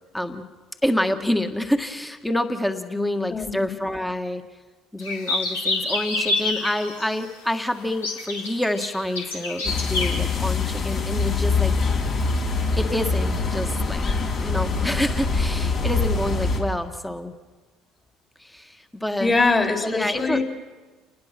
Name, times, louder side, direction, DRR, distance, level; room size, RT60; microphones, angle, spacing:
voice 1, 0.1-0.5 0.8-4.4 4.9-11.7 12.8-14.1 14.4-17.3 18.4-19.4 19.8-20.4, left 1 dB, 5° left, 7 dB, 1.8 m, -27 dB
sound 1, 5.0-7.1 7.9-10.1, left 2 dB, 85° left, 3.3 m, -27 dB
sound 2, 9.6-16.6, left 4 dB, 50° left, 4.3 m, -24 dB
voice 2, 19.2-20.4, left 3 dB, 30° left, 3 dB, 3.8 m, -22 dB
29.5 x 20.0 x 6.0 m, 1.4 s
hypercardioid pair, 60°, 0 cm